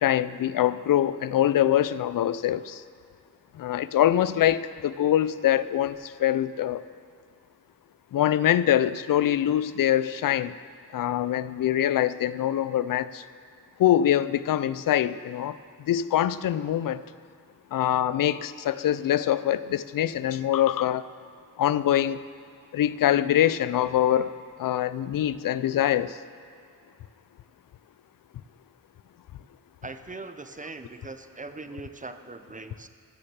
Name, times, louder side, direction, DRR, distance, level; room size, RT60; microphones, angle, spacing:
voice 1, 0.0-2.8 3.5-6.8 8.1-10.5 10.9-13.2 13.8-15.6 15.9-17.0 17.7-21.1 21.6-22.2 22.7-24.3 24.6-26.2, left 11 dB, 75° left, 16 dB, 0.5 m, -24 dB
voice 2, 29.8-32.9, right 3 dB, 25° right, 9 dB, 0.7 m, -40 dB
15.0 x 6.6 x 7.2 m, 2.3 s
cardioid pair, 65°, 33 cm